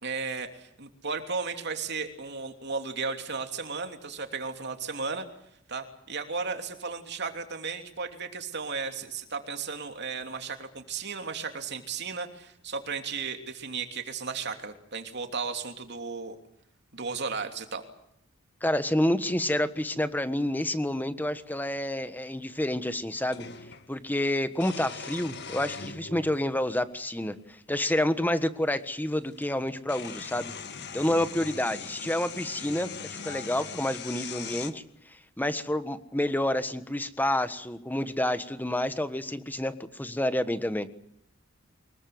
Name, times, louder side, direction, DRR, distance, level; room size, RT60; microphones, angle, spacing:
voice 1, 0.0-5.3 5.7-16.3 16.9-17.8, right 4 dB, 55° right, 6 dB, 3.0 m, -35 dB
voice 2, 18.6-23.4 23.9-30.5 30.9-34.8 35.4-40.9, left 1 dB, 10° left, 11 dB, 1.4 m, -29 dB
sound 1, 21.6-21.7 23.3-23.9 24.5-26.4 27.3-27.4 28.9-29.0 29.3-34.7, left 6 dB, 55° left, 2.0 m, -40 dB
24.5 x 22.0 x 7.9 m, 0.73 s
head